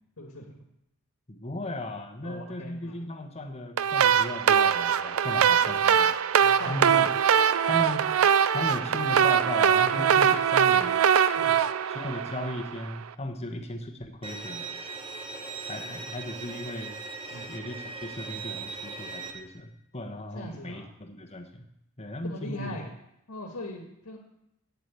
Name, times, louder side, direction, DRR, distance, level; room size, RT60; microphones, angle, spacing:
voice 1, 0.2-0.5 2.2-3.0 5.4-5.6 6.4-7.0 7.7-7.8 9.9-10.1 11.4-11.6 17.3-17.5 20.3-20.9 22.2-22.9 23.3-24.2, left 1 dB, 85° left, 0 dB, 1.7 m, -40 dB
voice 2, 1.3-6.1 6.6-7.1 7.7-8.1 8.5-11.0 11.9-14.7 15.7-16.9 17.3-21.6 22.0-22.8, left 1 dB, 30° left, 4 dB, 1.2 m, -36 dB
sound 1, 3.8-12.9, right 8 dB, 70° right, 0.4 m, -22 dB
Bowed string instrument, 14.2-19.3, right 4 dB, 25° right, 1.1 m, -39 dB
8.4 x 7.7 x 8.3 m, 0.82 s
head